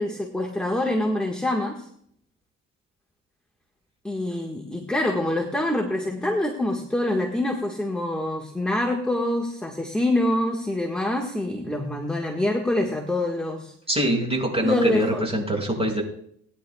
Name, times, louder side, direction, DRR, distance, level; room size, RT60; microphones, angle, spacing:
voice 1, 0.0-1.9 4.0-13.7 14.6-15.3, left 1 dB, 5° left, 0 dB, 1.6 m, -25 dB
voice 2, 13.9-16.0, right 1 dB, 20° right, -1 dB, 6.2 m, -24 dB
20.5 x 10.5 x 2.4 m, 0.66 s
cardioid pair, 90°, 30 cm